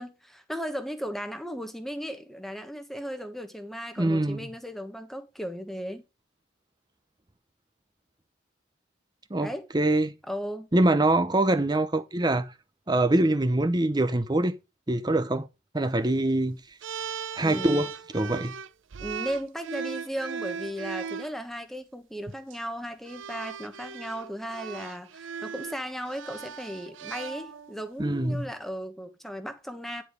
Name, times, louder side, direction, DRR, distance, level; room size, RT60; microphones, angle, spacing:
voice 1, 0.0-6.0 9.4-9.7 10.3-10.7 17.4-17.8 19.0-30.0, equal, ahead, 1.3 m, -36 dB
voice 2, 4.0-4.5 9.3-10.1 10.7-12.5 12.9-14.6 14.9-15.5 15.7-16.6 17.4-18.5 28.0-28.5, right 2 dB, 20° right, 0.7 m, -24 dB
sound 1, 16.8-21.3 22.3-22.6 23.1-27.9, right 6 dB, 65° right, 0.6 m, -38 dB
10.5 x 4.9 x 5.1 m
head